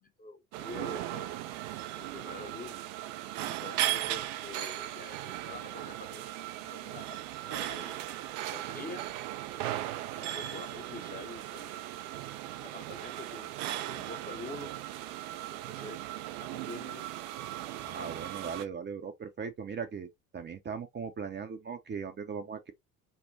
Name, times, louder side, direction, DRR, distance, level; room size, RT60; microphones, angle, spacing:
voice 1, 0.0-1.4 1.9-2.8 3.4-7.2 7.4-9.0 10.1-11.9 12.6-14.7 15.5-16.0 16.4-17.1, left 3 dB, 20° left, 0.8 m, -47 dB
sound 1, 0.5-18.6, right 14 dB, 65° right, 0.6 m, -37 dB
voice 2, 17.8-22.7, right 6 dB, 25° right, 0.6 m, -39 dB
5.5 x 2.1 x 2.7 m
hypercardioid pair, 70°, 42 cm